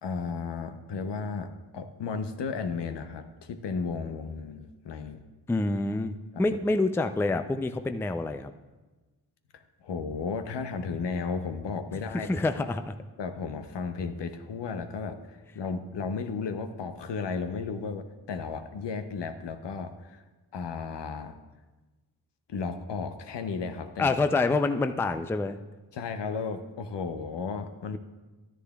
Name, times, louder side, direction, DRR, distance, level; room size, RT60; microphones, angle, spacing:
voice 1, 0.0-5.2 6.3-6.4 9.5-12.3 13.2-20.2 20.5-21.4 22.5-24.2 25.9-28.0, left 5 dB, 65° left, 8 dB, 0.9 m, -34 dB
voice 2, 5.5-8.5 12.1-13.0 24.0-25.6, left 3 dB, 5° left, 9 dB, 0.4 m, -27 dB
11.0 x 9.9 x 2.4 m, 1.2 s
supercardioid pair, 45°, 45 cm